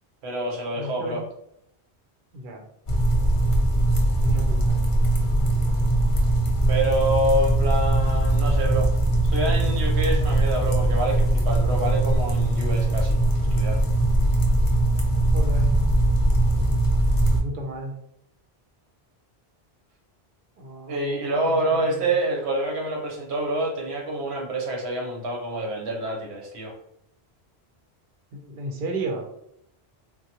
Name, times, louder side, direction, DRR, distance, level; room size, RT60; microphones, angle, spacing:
voice 1, 0.2-1.2 6.7-8.9 9.2-13.2 13.5-13.8 20.9-26.8, right 1 dB, 85° right, 0 dB, 1.1 m, -27 dB
voice 2, 0.7-1.1 2.3-2.7 4.2-4.8 15.3-15.7 17.3-17.9 20.6-21.6 28.3-29.3, right 1 dB, 55° right, 1 dB, 0.8 m, -33 dB
sound 1, 2.9-17.4, right 1 dB, 40° left, 0.5 m, -21 dB
3.7 x 2.2 x 2.8 m, 0.75 s
omnidirectional pair, 1.1 m